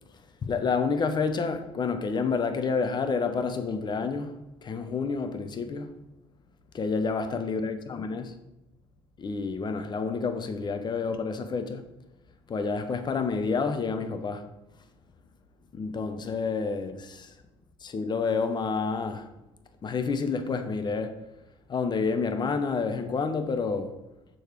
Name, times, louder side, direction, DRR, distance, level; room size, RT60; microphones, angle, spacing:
voice 1, 0.4-5.9 6.7-8.3 9.2-11.9 12.5-14.5 15.7-17.3 17.8-19.3 19.8-21.2 21.7-24.0, left 4 dB, 35° left, 0.8 m, -29 dB
6.6 x 3.2 x 4.6 m
hypercardioid pair, 60°, 13 cm